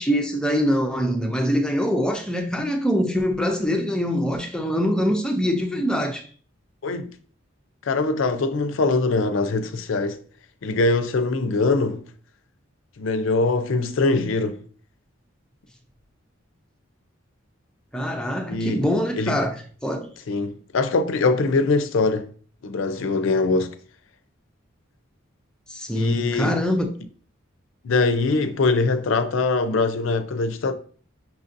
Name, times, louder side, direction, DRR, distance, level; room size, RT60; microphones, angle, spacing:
voice 1, 0.0-6.3 17.9-19.6 19.8-20.1 25.7-26.9, equal, 5° left, 0.4 m, -23 dB
voice 2, 7.9-10.2 10.6-12.0 13.0-14.6 18.5-18.8 19.2-19.4 20.3-22.3 22.6-23.7 25.9-26.6 27.8-30.7, left 3 dB, 70° left, 0.4 m, -22 dB
5.8 x 2.6 x 2.5 m
head